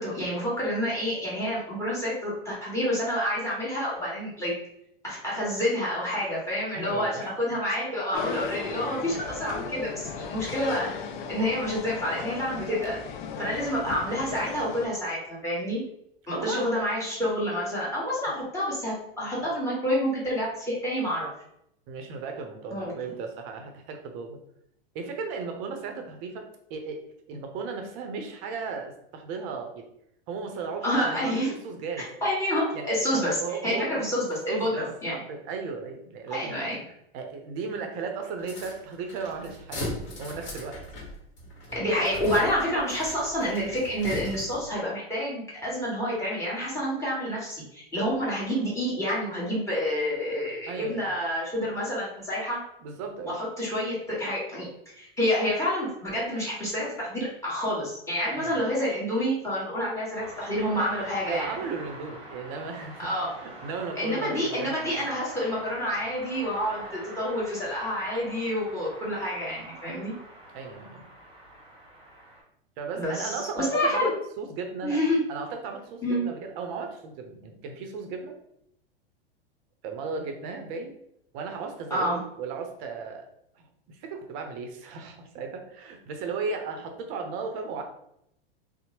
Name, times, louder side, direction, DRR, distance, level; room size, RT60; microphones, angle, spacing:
voice 1, 0.0-4.5 5.0-10.9 11.3-13.0 13.4-15.8 16.3-21.3 22.7-22.9 30.8-31.5 32.2-35.2 36.3-36.7 41.7-52.6 53.2-54.7 55.0-61.5 63.0-63.3 64.0-70.2 72.9-74.1 74.8-75.2 76.0-76.3 81.9-82.2, equal, 10° left, -7 dB, 1.3 m, -28 dB
voice 2, 6.7-7.3 13.3-13.5 16.4-16.7 21.9-24.4 24.9-27.0 27.3-29.8 30.3-32.1 32.7-32.9 33.1-34.1 34.5-36.6 37.1-40.8 50.7-51.1 52.8-53.4 58.3-58.6 61.3-63.1 63.4-65.0 70.5-71.1 72.8-75.0 75.3-78.3 79.8-80.9 81.3-83.3 83.6-87.8, right 5 dB, 45° right, 4 dB, 0.6 m, -36 dB
sound 1, 8.1-14.9, left 6 dB, 50° left, 0.4 m, -36 dB
sound 2, 38.4-44.7, left 1 dB, 35° left, 1.2 m, -39 dB
sound 3, 60.2-72.4, right 1 dB, 15° right, 1.0 m, -45 dB
2.7 x 2.0 x 2.9 m, 0.75 s
hypercardioid pair, 105°, 31 cm